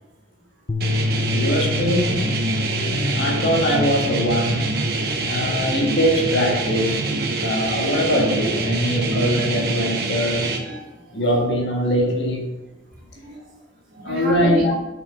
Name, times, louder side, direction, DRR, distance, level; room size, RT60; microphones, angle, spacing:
sound 1, 0.7-6.9, left 4 dB, 25° left, 0.4 m, -29 dB
sound 2, 0.8-10.6, right 3 dB, 50° right, 1.1 m, -25 dB
voice 1, 1.3-2.3 2.8-4.8 5.3-7.0 7.4-10.7 11.1-12.5 14.0-14.7, equal, 60° left, -1 dB, 1.8 m, -22 dB
voice 2, 4.6-5.8 7.3-7.7 10.6-11.2 13.2-13.6 13.9-14.7, equal, 75° right, -8 dB, 2.1 m, -33 dB
6.9 x 5.7 x 5.1 m, 1.0 s
head